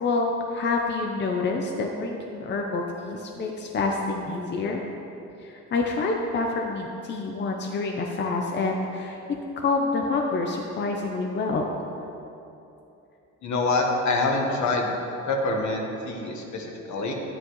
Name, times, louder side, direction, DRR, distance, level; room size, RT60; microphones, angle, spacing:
voice 1, 0.0-4.8 5.4-9.2 9.6-11.7, left 3 dB, 35° left, 1 dB, 0.7 m, -27 dB
voice 2, 13.4-14.9 15.3-17.1, left 2 dB, 70° left, 1 dB, 1.4 m, -26 dB
11.0 x 9.7 x 3.1 m, 2.8 s
cardioid pair, 140°, 30 cm